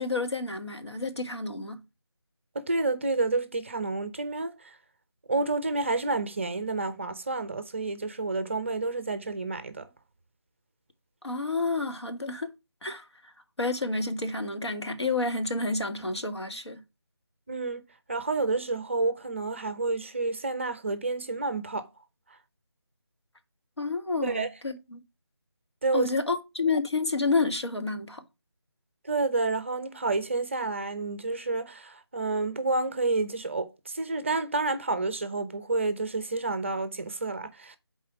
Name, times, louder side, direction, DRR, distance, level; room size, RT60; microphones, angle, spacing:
voice 1, 0.0-1.8 11.2-12.5 12.8-13.3 13.6-16.8 23.8-25.0 25.9-28.2, left 3 dB, 85° left, 1.6 m, -30 dB
voice 2, 2.5-4.8 5.3-9.9 17.5-17.8 18.1-21.9 24.2-24.5 25.8-26.1 29.0-37.8, right 3 dB, 30° right, 0.6 m, -29 dB
7.5 x 4.2 x 5.8 m
figure-of-eight pair, 160°, 14 cm